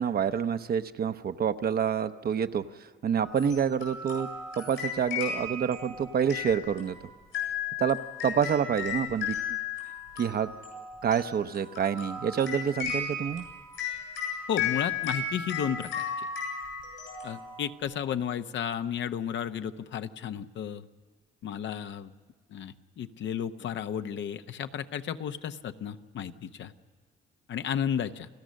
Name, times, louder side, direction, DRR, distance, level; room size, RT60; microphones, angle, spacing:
voice 1, 0.0-2.6 3.0-4.3 4.6-7.0 7.8-9.4 10.2-10.5 11.0-13.5, right 7 dB, 50° right, 10 dB, 0.8 m, -27 dB
sound 1, 3.2-17.9, left 6 dB, 90° left, 8.0 m, -35 dB
voice 2, 14.5-16.3 17.2-20.9 21.4-22.1 22.5-26.7 27.5-28.3, left 8 dB, 70° left, 9 dB, 0.8 m, -33 dB
29.5 x 15.0 x 6.5 m, 1.5 s
cardioid pair, 90°, 20 cm